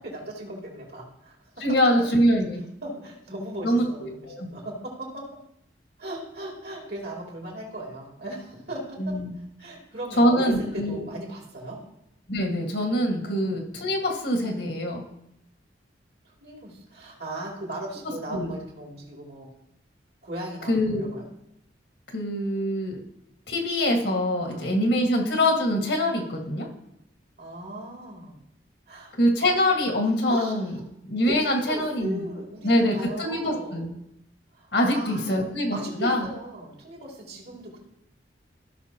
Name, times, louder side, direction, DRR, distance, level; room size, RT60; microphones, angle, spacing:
voice 1, 0.0-1.6 2.8-5.3 6.0-11.8 13.2-13.6 16.2-19.5 20.2-21.3 24.4-24.9 27.4-28.3 28.9-29.2 30.3-30.8 31.2-33.9 34.5-37.8, right 1 dB, 60° right, -2 dB, 2.8 m, -38 dB
voice 2, 1.6-2.6 3.6-4.5 9.0-9.3 10.2-11.0 12.3-15.1 18.3-18.5 20.7-21.0 22.1-23.0 23.5-26.7 29.2-30.7 31.0-32.2 32.6-33.9 34.7-36.2, equal, 70° left, 1 dB, 1.8 m, -24 dB
15.5 x 5.9 x 2.9 m, 0.80 s
head